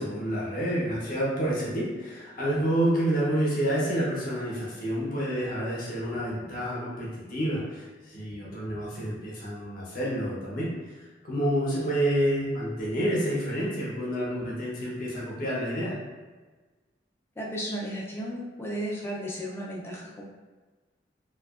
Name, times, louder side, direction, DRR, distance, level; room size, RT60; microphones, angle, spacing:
voice 1, 0.0-10.7 11.2-15.9, right 1 dB, 50° left, -6 dB, 0.7 m, -28 dB
voice 2, 17.4-20.2, equal, 15° left, -4 dB, 0.4 m, -34 dB
2.7 x 2.3 x 2.4 m, 1.3 s
head